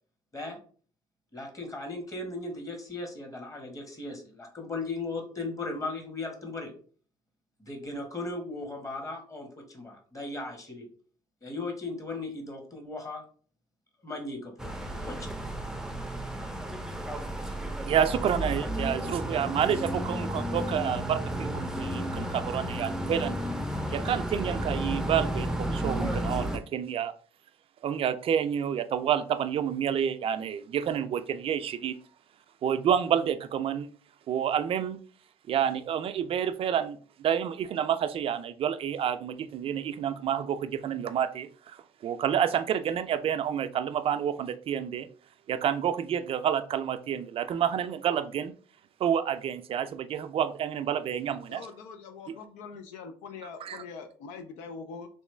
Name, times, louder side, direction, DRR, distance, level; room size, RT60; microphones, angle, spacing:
voice 1, 1.3-6.7 7.6-10.9 11.4-13.2 14.0-15.3, left 2 dB, 25° left, 1.4 m, -37 dB
sound 1, 14.6-26.6, equal, 5° right, 0.5 m, -32 dB
voice 2, 17.9-23.4 23.9-27.1 27.8-32.0 32.6-33.9 34.3-35.0 35.5-45.1 45.5-48.5 49.0-51.7 53.6-53.8, right 9 dB, 50° right, 0.4 m, -29 dB
voice 3, 51.5-55.1, left 5 dB, 85° left, 0.5 m, -43 dB
3.1 x 2.9 x 3.3 m
supercardioid pair, 70°, 12 cm